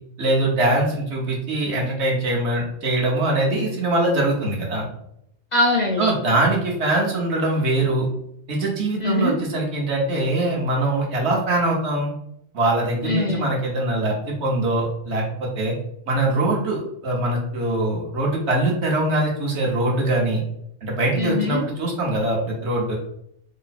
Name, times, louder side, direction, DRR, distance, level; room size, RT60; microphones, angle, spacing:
voice 1, 0.2-4.8 6.0-8.1 8.5-12.1 12.5-15.7 16.1-20.4 20.8-23.0, right 2 dB, 70° right, -2 dB, 1.2 m, -22 dB
voice 2, 5.5-6.1 9.0-9.3 13.0-13.5 21.2-21.6, left 2 dB, 55° left, 0 dB, 0.5 m, -22 dB
3.1 x 2.0 x 4.1 m, 0.75 s
omnidirectional pair, 1.2 m